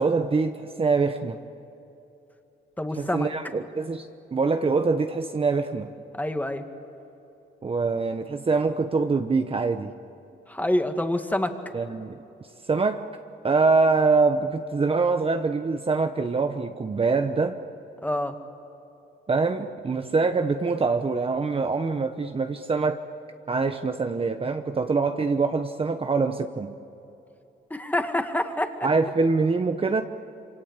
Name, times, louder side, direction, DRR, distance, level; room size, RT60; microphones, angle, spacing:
voice 1, 0.0-1.4 3.0-5.9 7.6-9.9 11.7-12.2 12.7-13.1 13.4-17.6 19.3-23.0 23.5-26.7 28.8-30.0, right 4 dB, 30° right, 7 dB, 1.0 m, -24 dB
voice 2, 2.8-3.3 6.1-6.6 10.5-11.6 18.0-18.4 27.7-28.7, left 1 dB, 10° left, 6 dB, 2.1 m, -26 dB
27.0 x 24.5 x 8.3 m, 2.9 s
cardioid pair, 90°, 20 cm